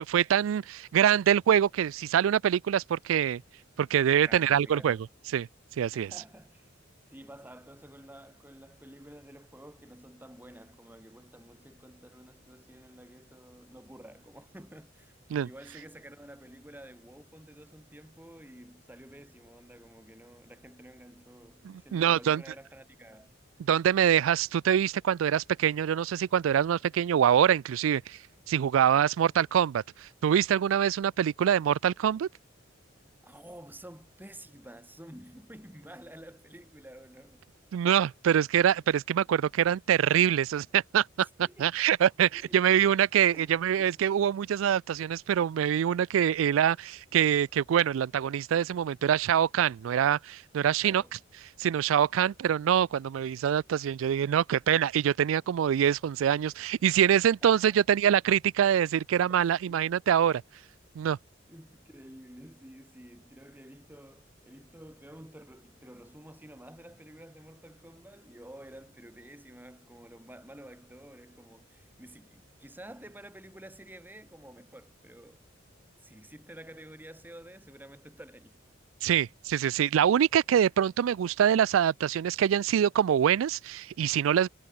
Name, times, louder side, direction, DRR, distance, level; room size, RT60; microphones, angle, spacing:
voice 1, 0.1-3.4 3.8-5.0 5.3-5.5 5.8-6.1 15.3-15.5 21.6-22.4 23.6-28.2 28.5-32.3 37.7-41.3 41.6-51.0 51.6-60.4 61.0-61.2 79.0-84.5, right 9 dB, 85° right, 0.3 m, -25 dB
voice 2, 4.3-5.0 5.9-6.7 7.1-15.1 15.4-23.3 33.2-37.4 41.4-41.8 42.3-42.6 43.3-43.9 50.8-51.2 57.4-57.8 59.3-59.9 61.5-75.4 76.0-78.6, right 1 dB, 10° right, 3.3 m, -50 dB
head